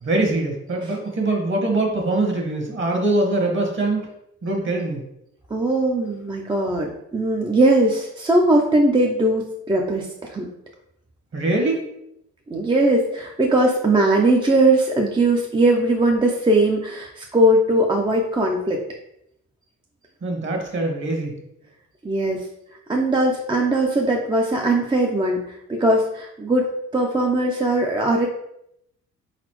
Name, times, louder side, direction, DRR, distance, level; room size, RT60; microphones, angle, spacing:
voice 1, 0.0-4.1 4.4-5.0 11.3-11.8 20.2-21.4, right 2 dB, 40° right, 2 dB, 1.3 m, -23 dB
voice 2, 5.5-10.5 12.5-18.8 22.0-22.4 22.9-25.4 25.7-28.3, right 1 dB, 15° right, 0 dB, 0.5 m, -20 dB
4.0 x 4.0 x 3.1 m, 0.79 s
cardioid pair, 90°, 30 cm